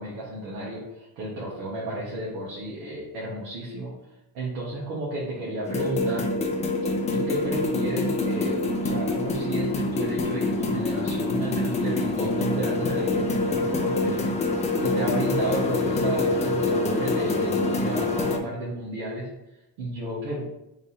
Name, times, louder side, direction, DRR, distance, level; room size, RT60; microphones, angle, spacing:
voice 1, 0.0-3.9 4.3-6.3 7.1-19.3 19.8-20.5, right 1 dB, 85° right, -6 dB, 1.4 m, -32 dB
sound 1, 5.6-18.4, left 2 dB, 15° left, 0.3 m, -25 dB
3.6 x 3.1 x 4.1 m, 0.92 s
cardioid pair, 125°, 45 cm